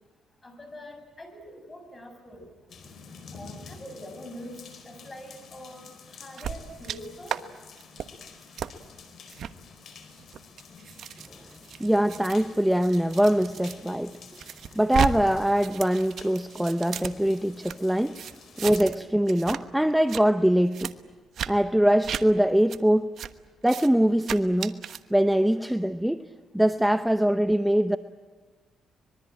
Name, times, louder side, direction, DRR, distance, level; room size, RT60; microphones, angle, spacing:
voice 1, 0.4-2.5 3.3-7.4, left 1 dB, 20° left, 6 dB, 7.1 m, -44 dB
sound 1, 2.7-18.8, left 5 dB, 60° left, 4.6 m, -49 dB
sound 2, 6.4-7.0 7.3-7.4 7.8-8.1 8.6-8.7 9.3-9.5 10.2-13.8 14.1-15.1 15.4-17.8 18.1-19.0 19.3-19.6 19.9-20.2 20.7-20.9 21.3-21.5 22.0-22.2 22.7-22.8 23.2-23.3 23.6-23.9 24.2-25.0, right 8 dB, 65° right, 1.2 m, -34 dB
voice 2, 11.8-14.2 14.7-18.2 18.6-21.0 21.5-23.1 23.6-24.8 25.1-26.2 26.5-28.0, equal, 5° right, 10 dB, 0.8 m, -23 dB
25.0 x 22.0 x 8.9 m, 1.3 s
cardioid pair, 90°, 0 cm